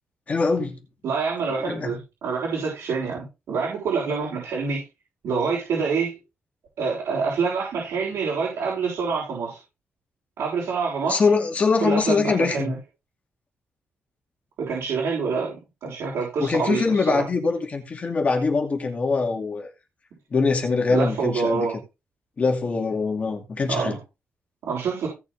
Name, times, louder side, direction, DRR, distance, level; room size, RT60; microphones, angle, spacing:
voice 1, 0.3-0.8 1.4-1.9 11.1-12.7 16.4-19.7 20.3-21.7 22.4-24.0, left 4 dB, 30° left, 2.5 m, -23 dB
voice 2, 1.0-4.8 5.2-6.2 6.8-9.6 10.4-11.2 11.8-12.8 14.6-15.5 15.8-17.2 20.9-21.8 23.7-24.0 24.6-25.1, right 5 dB, 85° right, 6.3 m, -26 dB
17.0 x 6.6 x 3.5 m
wide cardioid pair, 175°, 4 cm